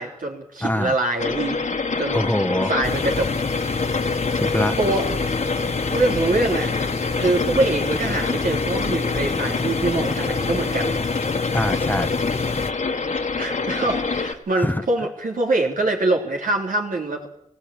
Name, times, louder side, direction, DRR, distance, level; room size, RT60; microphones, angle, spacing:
voice 1, 0.0-1.6 2.0-2.2 2.7-3.3 4.8-5.1 5.8-6.9 7.2-10.9 13.4-17.3, right 2 dB, 90° right, 1 dB, 3.7 m, -24 dB
voice 2, 0.6-0.9 2.1-2.7 4.4-4.8 11.5-12.1 14.6-14.8, left 1 dB, 15° left, 11 dB, 1.1 m, -23 dB
sound 1, 1.2-14.3, left 4 dB, 65° left, 1.8 m, -26 dB
sound 2, 2.8-12.7, left 4 dB, 50° left, 1.2 m, -29 dB
19.0 x 17.5 x 8.7 m, 0.77 s
wide cardioid pair, 70°, 14 cm